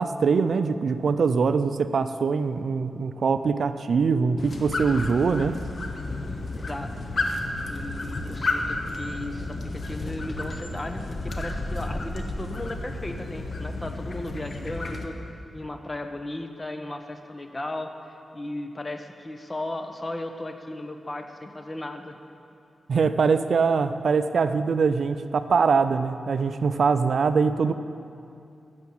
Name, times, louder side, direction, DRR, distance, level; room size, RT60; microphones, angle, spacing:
voice 1, 0.0-5.6 22.9-27.7, right 5 dB, 70° right, 11 dB, 0.4 m, -23 dB
sound 1, 4.4-15.1, left 2 dB, 50° left, 1.1 m, -32 dB
voice 2, 6.5-6.9 7.7-15.2 15.5-22.2, left 1 dB, 25° left, 6 dB, 1.0 m, -36 dB
13.0 x 7.0 x 7.9 m, 2.6 s
wide cardioid pair, 90°, 0 cm